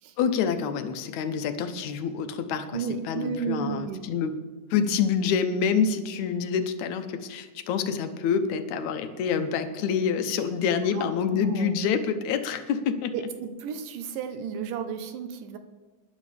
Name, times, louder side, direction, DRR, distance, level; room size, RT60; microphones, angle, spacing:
voice 1, 0.2-4.4 4.7-13.1, left 6 dB, 70° left, 8 dB, 2.0 m, -27 dB
voice 2, 2.7-4.0 10.9-11.0 11.3-11.7 13.1-15.6, right 7 dB, 80° right, 8 dB, 2.5 m, -33 dB
22.0 x 11.0 x 3.3 m, 1.3 s
omnidirectional pair, 3.8 m